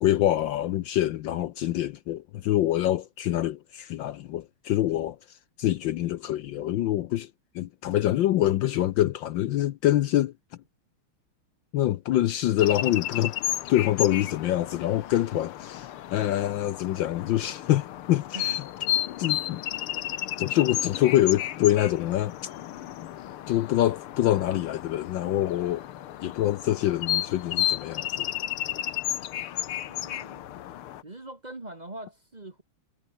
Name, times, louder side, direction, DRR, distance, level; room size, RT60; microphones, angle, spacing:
voice 1, 0.0-10.3 11.7-13.4 13.7-18.6 19.2-19.6 20.4-22.3 23.5-25.9 26.2-28.4, left 13 dB, 70° left, 1.3 m, -25 dB
sound 1, 12.6-31.0, left 12 dB, 90° left, 1.9 m, -33 dB
voice 2, 29.8-30.4 31.0-32.6, right 2 dB, 20° right, 1.5 m, -42 dB
omnidirectional pair, 2.4 m